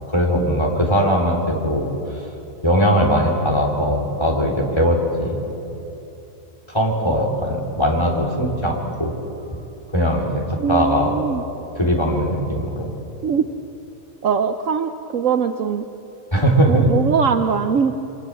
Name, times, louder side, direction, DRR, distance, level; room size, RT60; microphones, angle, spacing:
voice 1, 0.1-1.9 2.6-5.4 6.7-9.1 9.9-11.1 11.7-12.9 16.3-16.9, equal, 15° left, 0 dB, 3.8 m, -20 dB
voice 2, 10.6-11.4 13.2-13.5 14.2-15.8 16.7-17.9, right 6 dB, 60° right, 7 dB, 1.1 m, -21 dB
29.0 x 24.5 x 7.7 m, 2.9 s
omnidirectional pair, 1.7 m